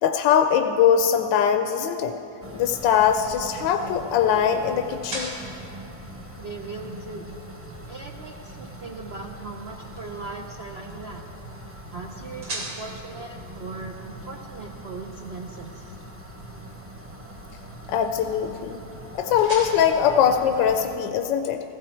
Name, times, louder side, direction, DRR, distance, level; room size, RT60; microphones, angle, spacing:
voice 1, 0.0-2.1 2.5-5.3 17.9-18.8 19.1-21.6, left 8 dB, 85° left, 6 dB, 1.3 m, -21 dB
sound 1, 2.4-21.0, right 1 dB, 15° right, 0.4 m, -42 dB
sound 2, 2.4-21.2, right 1 dB, 85° right, 3.7 m, -44 dB
voice 2, 6.3-7.3 7.9-11.2 11.9-16.0, right 3 dB, 70° right, 2 dB, 0.6 m, -39 dB
15.5 x 15.0 x 4.4 m, 2.8 s
omnidirectional pair, 2.0 m